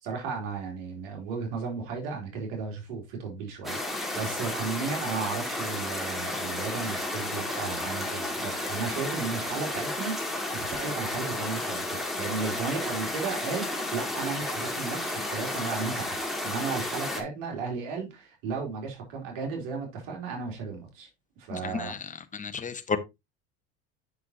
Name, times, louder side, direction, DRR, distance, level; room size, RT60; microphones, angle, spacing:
voice 1, 0.0-16.2 16.4-21.1 21.4-22.0, right 5 dB, 75° right, 3.4 m, -34 dB
sound 1, 3.6-17.2, left 1 dB, ahead, 2.3 m, -32 dB
voice 2, 21.5-22.0 22.3-23.0, left 5 dB, 20° left, 1.1 m, -32 dB
8.3 x 6.2 x 2.9 m
supercardioid pair, 100°, 37 cm